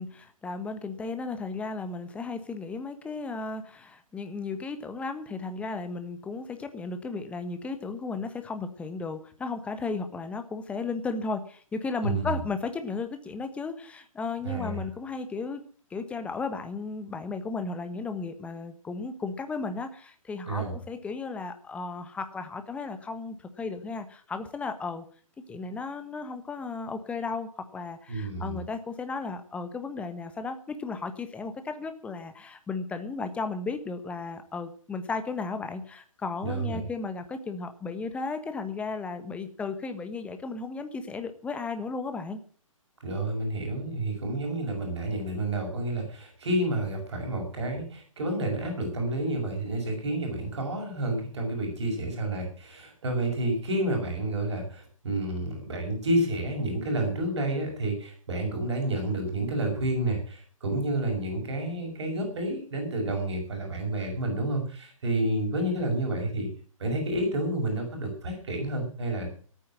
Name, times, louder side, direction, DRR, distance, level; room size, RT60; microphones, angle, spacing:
voice 1, 0.0-15.6 15.9-25.0 25.5-42.4, left 4 dB, 5° left, 8 dB, 1.3 m, -35 dB
voice 2, 12.0-12.4 14.4-14.8 20.5-20.8 28.1-28.6 36.4-36.8 43.0-66.5 66.8-69.3, right 1 dB, 55° right, 2 dB, 6.0 m, -30 dB
14.5 x 9.3 x 7.5 m, 0.43 s
figure-of-eight pair, 130°, 18 cm